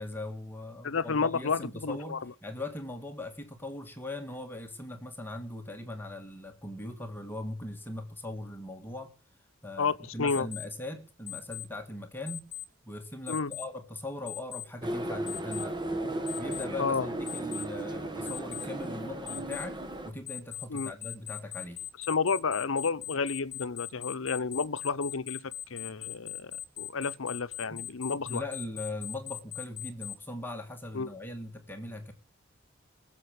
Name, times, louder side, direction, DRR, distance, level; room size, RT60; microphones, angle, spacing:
voice 1, 0.0-9.1 9.6-12.5 12.9-15.8 16.4-21.9 27.7-27.8 28.1-32.1, left 1 dB, 10° left, 1.8 m, -40 dB
voice 2, 0.8-2.3 9.8-10.5 13.3-13.5 16.8-17.1 20.7-20.9 22.1-28.4 30.9-31.1, left 4 dB, 80° left, 0.8 m, -31 dB
Alarm, 10.3-10.6 11.3-11.6 12.3-12.6 13.3-13.6 14.3-14.6 15.3-15.6 16.3-16.6 17.3-17.6 18.3-18.6 19.3-19.6 20.3-30.1, left 14 dB, 45° left, 1.9 m, -39 dB
sound 1, 14.8-20.1, right 1 dB, 25° right, 1.6 m, -35 dB
20.5 x 7.6 x 6.5 m
head